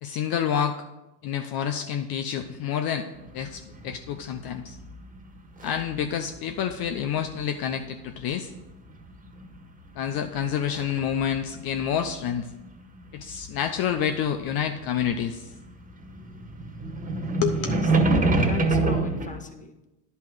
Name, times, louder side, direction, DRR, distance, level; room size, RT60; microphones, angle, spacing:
voice 1, 0.0-0.8 1.2-3.1 3.3-4.8 5.6-8.5 9.9-12.5 13.1-15.5 17.4-17.7, left 8 dB, 50° left, 6 dB, 0.8 m, -28 dB
sound 1, 3.2-6.1 6.4-7.6 8.3-9.8 10.1-15.2 15.5-19.3, right 2 dB, 15° right, 1.7 m, -27 dB
voice 2, 17.5-17.9 18.2-19.9, left 2 dB, 15° left, 6 dB, 1.3 m, -38 dB
10.5 x 5.5 x 6.4 m, 0.98 s
hypercardioid pair, 80°, 47 cm